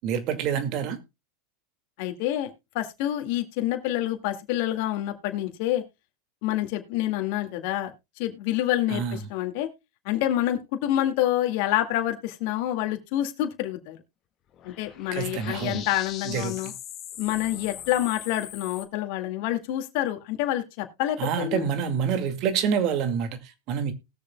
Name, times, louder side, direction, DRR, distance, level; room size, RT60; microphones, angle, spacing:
voice 1, 0.0-1.0 8.9-9.2 15.1-15.8 16.2-16.7 21.2-23.9, right 7 dB, 50° right, 2.0 m, -27 dB
voice 2, 2.0-5.8 6.4-9.7 10.1-14.0 14.6-16.7 17.2-21.7, left 13 dB, 65° left, 2.0 m, -27 dB
sound 1, 14.5-18.8, left 10 dB, 40° left, 1.8 m, -41 dB
19.5 x 6.8 x 2.2 m
supercardioid pair, 120°, 0 cm